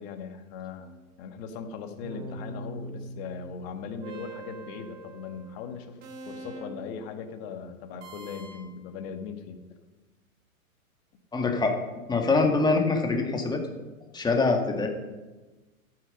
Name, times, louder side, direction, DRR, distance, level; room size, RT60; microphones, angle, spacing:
voice 1, 0.0-6.0 6.3-9.6, left 6 dB, 45° left, 7 dB, 1.7 m, -39 dB
sound 1, 0.8-1.3 2.0-7.0 8.0-8.8, right 2 dB, 55° right, 3.3 m, -43 dB
voice 2, 11.3-11.8 12.1-13.6 14.1-14.9, left 3 dB, 10° left, 3 dB, 1.7 m, -24 dB
12.5 x 9.1 x 5.3 m, 1.2 s
hypercardioid pair, 120°, 43 cm